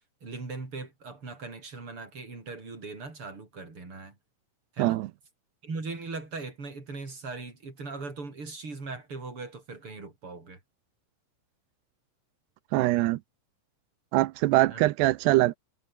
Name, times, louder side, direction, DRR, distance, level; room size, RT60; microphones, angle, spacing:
voice 1, 0.2-4.1 4.7-5.0 5.6-10.6 14.7-14.9, right 3 dB, 25° right, 6.4 m, -39 dB
voice 2, 12.7-13.2 14.1-15.6, right 18 dB, 90° right, 2.4 m, -23 dB
omnidirectional pair, 5.8 m